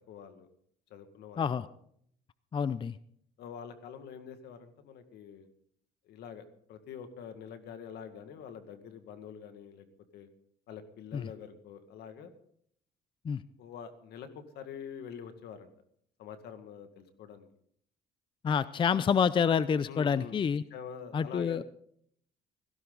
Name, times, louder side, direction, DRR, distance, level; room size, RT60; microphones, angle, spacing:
voice 1, 0.1-0.5 0.9-1.7 3.4-5.5 6.1-9.9 10.1-10.3 10.7-12.3 13.6-15.7 16.2-17.5 19.9-20.4 20.7-21.6, left 7 dB, 75° left, 9 dB, 2.0 m, -46 dB
voice 2, 1.4-1.7 2.5-2.9 11.1-11.3 13.2-13.4 18.4-20.6 21.1-21.6, left 7 dB, 30° left, 16 dB, 0.5 m, -28 dB
17.0 x 16.0 x 4.0 m, 0.66 s
cardioid pair, 110°, 17 cm